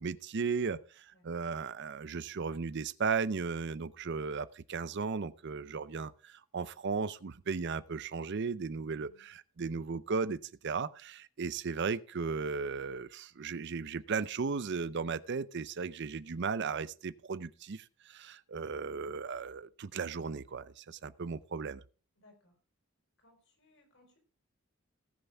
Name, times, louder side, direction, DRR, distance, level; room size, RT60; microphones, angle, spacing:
voice 1, 0.0-21.8, right 5 dB, 55° right, 0.5 m, -36 dB
voice 2, 1.1-1.5 9.0-9.2 22.2-22.5 23.2-24.2, left 1 dB, 60° left, 4.5 m, -65 dB
19.0 x 6.9 x 3.5 m
head